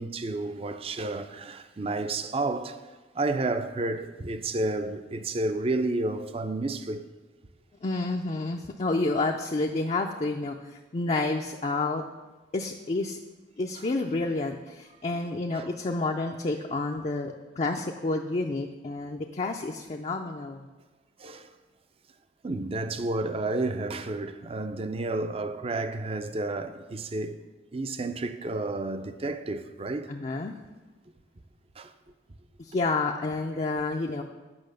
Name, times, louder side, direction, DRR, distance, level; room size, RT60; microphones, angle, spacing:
voice 1, 0.0-2.8 3.1-7.0 15.5-15.7 21.2-21.5 22.4-27.4 27.7-30.1 31.8-31.9, right 2 dB, 35° right, 0.5 m, -31 dB
voice 2, 7.8-12.0 12.5-13.2 13.6-20.7 30.1-30.5 32.6-34.2, left 3 dB, 35° left, 0.4 m, -29 dB
8.7 x 5.6 x 6.5 m
head